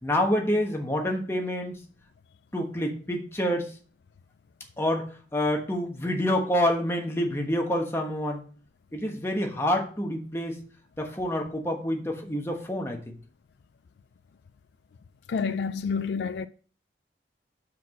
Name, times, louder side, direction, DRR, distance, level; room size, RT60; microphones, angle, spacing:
voice 1, 0.0-1.8 2.5-3.7 4.8-5.1 5.3-8.4 8.9-10.6 11.0-13.1, left 1 dB, 15° left, 1.2 m, -27 dB
voice 2, 15.3-16.5, left 5 dB, 70° left, 0.3 m, -28 dB
5.9 x 4.7 x 5.9 m
head